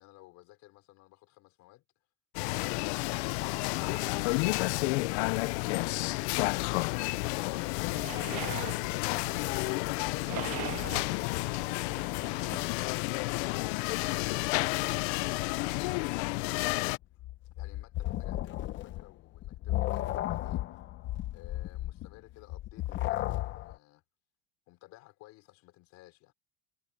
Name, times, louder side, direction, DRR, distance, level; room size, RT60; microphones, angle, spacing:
voice 1, 0.0-1.8 13.3-14.8 17.6-20.6 21.3-24.0 24.7-26.3, left 19 dB, 55° left, 5.5 m, -56 dB
sound 1, 2.3-17.0, left 25 dB, 85° left, 0.6 m, -31 dB
sound 2, 7.9-12.7, right 15 dB, 50° right, 1.6 m, -42 dB
sound 3, 16.7-23.8, left 15 dB, 35° left, 0.8 m, -34 dB
cardioid pair, 155°, 32 cm